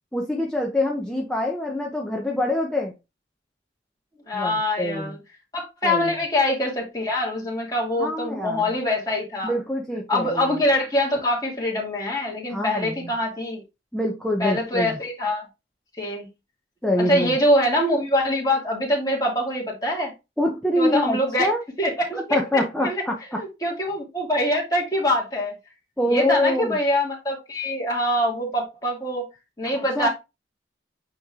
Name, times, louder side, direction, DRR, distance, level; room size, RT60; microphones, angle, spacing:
voice 1, 0.1-2.9 4.3-5.2 5.8-6.1 8.0-8.8 9.4-10.6 12.5-13.1 13.9-15.0 16.8-17.4 20.4-21.6 22.1-23.4 26.0-26.8 29.8-30.1, left 1 dB, 5° left, -1 dB, 0.9 m, -25 dB
voice 2, 4.3-5.2 5.5-9.5 10.1-13.6 14.4-15.5 16.0-16.3 17.1-20.1 20.8-21.5 21.8-22.2 22.8-23.0 23.4-25.5 26.1-29.2 29.6-30.1, left 1 dB, 20° left, -2 dB, 2.6 m, -24 dB
8.5 x 3.2 x 3.8 m, 0.25 s
head